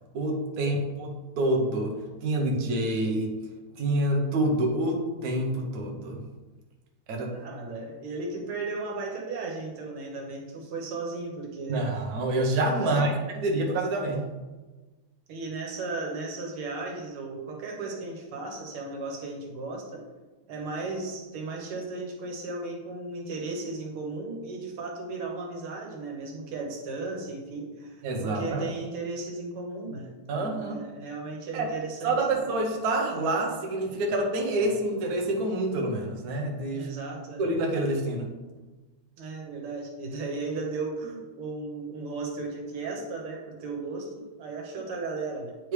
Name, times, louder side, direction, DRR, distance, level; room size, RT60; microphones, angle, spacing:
voice 1, 0.1-1.9 2.2-3.3 3.8-6.2 7.1-7.3 11.7-13.2 13.4-14.3 28.0-28.7 30.3-30.8 31.5-31.7 32.0-36.9 37.4-38.3 45.6-45.7, right 1 dB, 55° right, 0 dB, 1.1 m, -27 dB
voice 2, 7.3-11.9 12.8-13.2 15.3-20.0 20.5-32.5 34.6-34.7 36.7-37.4 39.2-45.5, right 3 dB, 85° right, 0 dB, 2.0 m, -35 dB
9.5 x 3.3 x 3.2 m, 1.2 s
omnidirectional pair, 2.4 m